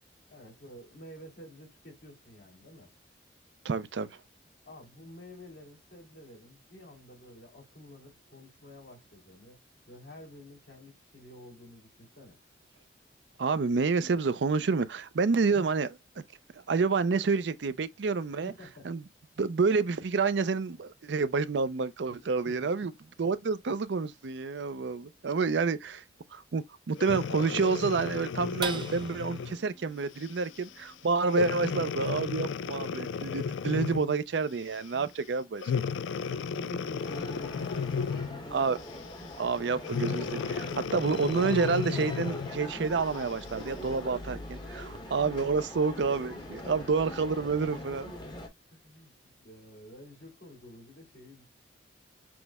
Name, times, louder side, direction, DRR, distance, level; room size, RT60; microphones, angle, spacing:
voice 1, 0.3-2.9 4.6-12.4 15.5-15.7 18.3-18.9 22.1-22.7 34.9-35.1 36.2-38.7 46.5-46.9 48.7-51.5, left 1 dB, 65° left, 2.6 m, -50 dB
voice 2, 3.6-4.1 13.4-15.9 16.7-18.5 18.9-19.0 19.4-22.9 23.2-26.0 26.3-35.6 38.5-38.8 39.4-48.1, right 4 dB, 70° right, 0.5 m, -29 dB
Breathing, 27.0-29.6 30.2-30.5 31.3-34.2 35.6-38.5 39.8-42.6 43.2-43.3, left 6 dB, 85° left, 0.3 m, -34 dB
sound 1, 28.6-35.3 35.8-35.9 36.3-36.8, right 4 dB, 25° right, 0.6 m, -45 dB
sound 2, 37.0-48.5, left 1 dB, 25° left, 1.0 m, -42 dB
6.1 x 2.1 x 3.5 m
head